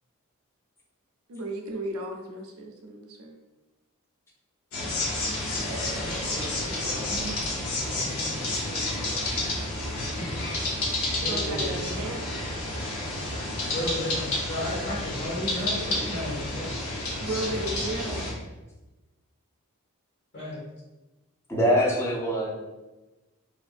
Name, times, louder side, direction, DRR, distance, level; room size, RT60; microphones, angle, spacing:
voice 1, 1.3-3.4 11.3-12.2 17.2-18.2, right 1 dB, 75° right, 2 dB, 0.5 m, -34 dB
sound 1, 4.7-18.3, left 1 dB, 75° left, 0.7 m, -30 dB
voice 2, 6.3-7.3 7.7-9.4 9.9-10.4 11.2-12.0 13.6-16.7 20.3-20.6, left 1 dB, 55° left, -7 dB, 1.5 m, -35 dB
voice 3, 21.5-22.5, equal, 10° left, -3 dB, 0.5 m, -23 dB
2.7 x 2.5 x 2.4 m, 1.1 s
head